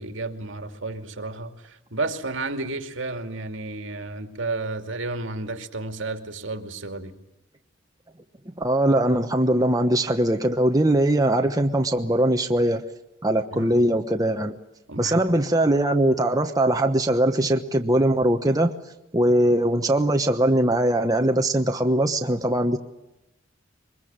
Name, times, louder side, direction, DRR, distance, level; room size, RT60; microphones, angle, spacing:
voice 1, 0.0-7.2 13.5-13.8 14.9-15.2, right 3 dB, 75° right, 7 dB, 2.5 m, -32 dB
voice 2, 8.6-12.8 13.2-14.6 15.0-18.7 19.1-22.8, right 1 dB, 20° right, 4 dB, 1.1 m, -21 dB
23.5 x 22.0 x 8.9 m, 0.93 s
head